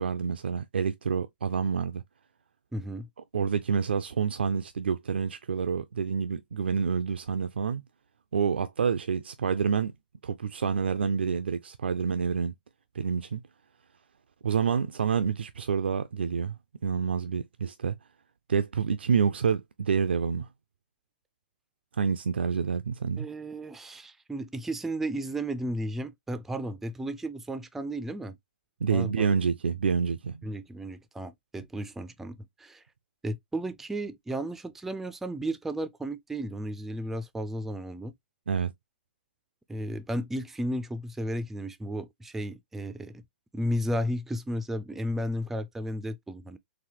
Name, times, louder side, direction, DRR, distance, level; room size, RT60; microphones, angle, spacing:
voice 1, 0.0-2.0 3.3-7.8 8.3-9.9 10.2-12.5 12.9-13.4 14.4-16.6 16.8-18.0 18.5-20.5 22.0-23.3 28.8-30.4 38.5-38.7, right 6 dB, 90° right, 0.4 m, -28 dB
voice 2, 2.7-3.1 23.2-28.4 28.9-29.3 30.4-32.8 33.2-38.1 39.7-43.2 43.5-46.6, equal, 5° right, 0.3 m, -34 dB
4.0 x 2.6 x 2.9 m
hypercardioid pair, 135°, 6 cm